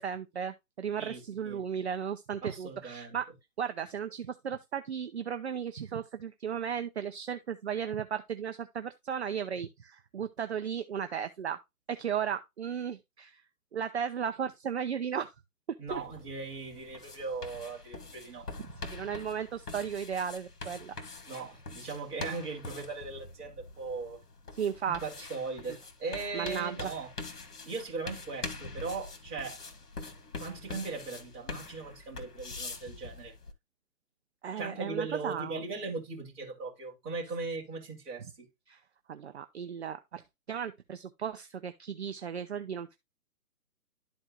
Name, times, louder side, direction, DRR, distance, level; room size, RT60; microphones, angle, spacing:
voice 1, 0.0-3.3 3.6-11.6 11.9-13.4 13.7-15.3 15.7-16.0 18.8-20.9 24.5-25.3 26.3-26.9 34.4-35.6 38.7-38.8 39.1-40.2 40.5-43.0, right 8 dB, 45° right, 0.6 m, -35 dB
voice 2, 1.0-1.6 2.4-3.2 15.8-18.5 21.3-24.2 25.0-27.1 27.6-29.6 30.4-33.3 34.6-38.5, right 4 dB, 10° right, 2.3 m, -39 dB
sound 1, 15.9-33.5, left 3 dB, 90° left, 1.7 m, -44 dB
12.0 x 4.4 x 2.3 m
hypercardioid pair, 155°, 45 cm